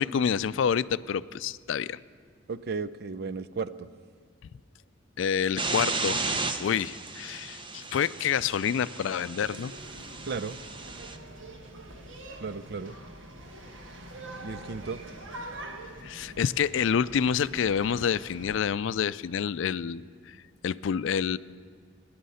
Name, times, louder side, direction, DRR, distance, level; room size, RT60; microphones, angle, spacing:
voice 1, 0.0-2.0 5.2-6.2 6.6-9.7 16.0-20.4 20.6-21.4, left 7 dB, 70° left, 17 dB, 0.4 m, -28 dB
voice 2, 2.5-3.9 10.2-10.6 12.4-13.0 14.4-15.0, right 4 dB, 55° right, 13 dB, 0.5 m, -34 dB
sound 1, 5.6-11.2, right 3 dB, 25° right, 0.8 m, -34 dB
sound 2, 9.4-18.6, right 1 dB, 70° right, 1.5 m, -44 dB
22.0 x 10.5 x 5.6 m, 2.1 s
head